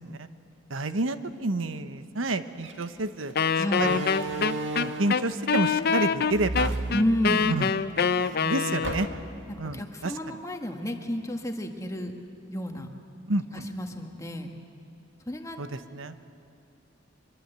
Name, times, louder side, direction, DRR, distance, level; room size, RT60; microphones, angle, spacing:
voice 1, 0.7-3.3 3.8-4.0 4.8-6.7 7.5-7.7 8.4-9.1 9.6-10.4 13.3-13.7 15.6-16.1, right 2 dB, 90° right, 10 dB, 1.0 m, -29 dB
Slam, 2.6-2.8 3.7-5.3 6.3-7.7 8.1-8.2 8.8-9.4, right 2 dB, 70° right, 1.8 m, -33 dB
Wind instrument woodwind instrument, 3.4-9.2, left 6 dB, 50° left, 0.6 m, -25 dB
voice 2, 3.6-4.0 6.9-7.5 9.5-12.1 12.5-12.9 13.5-14.5 15.3-15.6, equal, 15° left, 4 dB, 1.7 m, -30 dB
24.5 x 22.5 x 8.2 m, 2.5 s
head